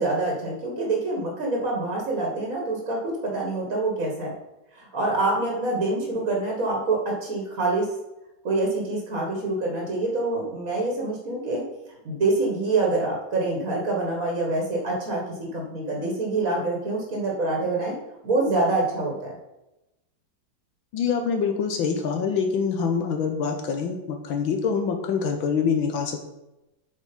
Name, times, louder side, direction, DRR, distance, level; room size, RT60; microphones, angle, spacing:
voice 1, 0.0-4.3 4.8-7.9 8.4-11.6 12.0-15.2 15.5-18.0 18.2-19.3, right 2 dB, 45° right, -1 dB, 1.9 m, -26 dB
voice 2, 20.9-26.3, left 6 dB, 80° left, 5 dB, 1.6 m, -25 dB
8.4 x 5.4 x 5.3 m, 0.96 s
omnidirectional pair, 2.2 m